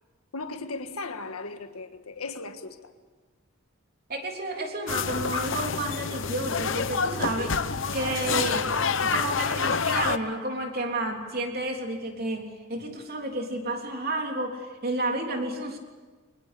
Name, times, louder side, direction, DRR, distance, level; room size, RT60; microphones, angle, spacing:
voice 1, 0.3-2.9, left 3 dB, 80° left, 1.7 m, -37 dB
voice 2, 4.1-7.6 7.9-8.7 9.0-15.8, right 2 dB, 45° right, 3.5 m, -31 dB
sound 1, 4.9-10.2, left 5 dB, 55° left, 0.9 m, -27 dB
24.0 x 20.5 x 8.4 m
head